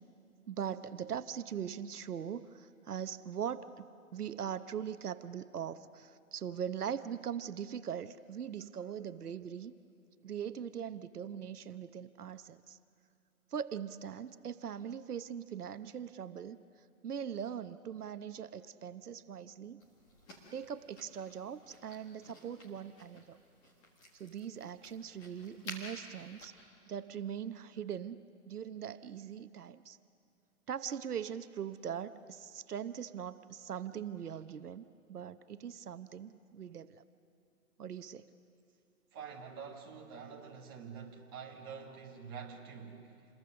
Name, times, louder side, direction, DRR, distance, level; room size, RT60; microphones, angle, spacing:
voice 1, 0.5-3.9 4.1-9.7 10.2-12.8 13.5-16.6 17.0-19.8 20.5-23.4 24.1-26.5 26.9-30.0 30.7-34.8 35.1-37.0 37.8-38.3, right 8 dB, 85° right, 12 dB, 1.0 m, -41 dB
sound 1, 19.8-26.5, equal, 10° left, 1.5 m, -53 dB
voice 2, 39.1-43.3, right 6 dB, 15° right, -2 dB, 1.5 m, -47 dB
28.0 x 21.5 x 6.5 m, 2.6 s
hypercardioid pair, 170°, 44 cm